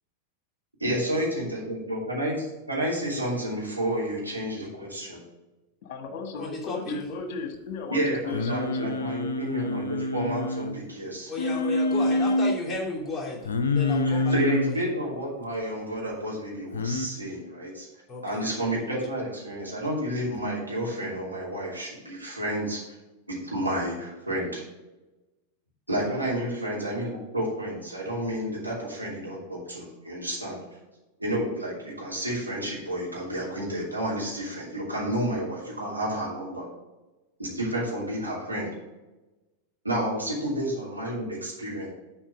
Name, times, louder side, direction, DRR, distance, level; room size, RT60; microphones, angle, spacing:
voice 1, 0.8-5.2 7.9-11.3 14.0-17.9 18.2-22.8 23.3-24.6 25.9-30.6 31.2-36.7 37.4-38.7 39.8-41.9, right 1 dB, 85° right, -5 dB, 2.8 m, -30 dB
voice 2, 5.8-9.0, left 4 dB, 45° left, 6 dB, 1.4 m, -36 dB
voice 3, 6.4-7.0 11.3-13.4 13.7-14.3 18.1-18.4, left 3 dB, 5° left, -5 dB, 2.7 m, -33 dB
Singing, 8.3-10.8 11.4-12.6 13.5-14.8 16.7-17.1, left 2 dB, 70° left, 0.6 m, -26 dB
7.3 x 4.5 x 6.0 m, 1.1 s
figure-of-eight pair, 90°, 0 cm